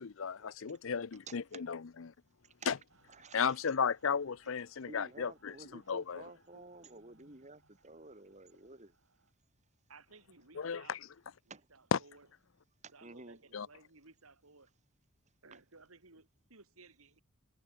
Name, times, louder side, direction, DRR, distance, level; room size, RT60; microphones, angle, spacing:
voice 1, 0.0-2.1 2.7-2.8 3.3-6.2 10.6-11.0 11.9-12.0 13.5-13.7, left 6 dB, 65° left, 0.6 m, -34 dB
voice 2, 1.3-1.6 2.6-2.7 3.1-3.6 4.8-8.9 11.5-11.6 12.8-13.4, right 3 dB, 35° right, 3.7 m, -52 dB
Mechanical fan, 2.9-9.3, right 3 dB, 65° right, 7.0 m, -70 dB
voice 3, 9.9-11.0 11.4-12.3 12.9-14.7 15.4-17.2, right 3 dB, 85° right, 3.3 m, -59 dB
head